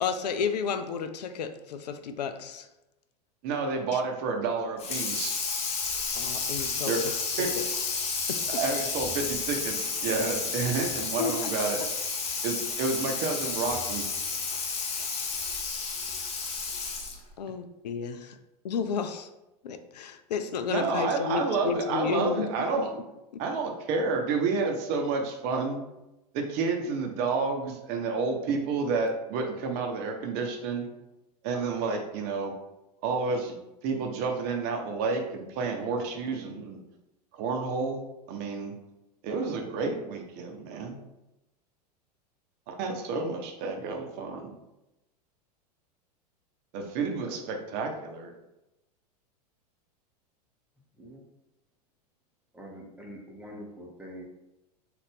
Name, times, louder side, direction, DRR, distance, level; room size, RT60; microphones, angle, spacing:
voice 1, 0.0-2.7 3.9-4.0 6.2-7.0 7.4-7.6 8.3-8.4 11.2-11.5 17.4-18.4 18.6-19.3 19.6-22.5 22.9-23.0 23.3-23.4, left 6 dB, 80° left, 9 dB, 0.4 m, -32 dB
voice 2, 3.4-5.3 6.9-7.0 7.4-7.5 8.5-11.8 12.4-14.0 20.7-22.9 23.4-25.8 26.3-30.9 31.4-32.5 33.0-33.6 33.8-36.8 37.3-38.0 38.3-38.7 39.2-41.0 42.7-44.5 46.7-48.3, right 4 dB, 50° right, 3 dB, 0.7 m, -30 dB
Water tap faucet / Sink (filling or washing), 4.8-17.3, left 4 dB, 30° left, 0.7 m, -31 dB
voice 3, 47.2-47.9 50.9-51.2 52.5-54.2, equal, 5° right, -2 dB, 0.9 m, -45 dB
3.9 x 2.5 x 3.4 m, 0.94 s
hypercardioid pair, 95°, 21 cm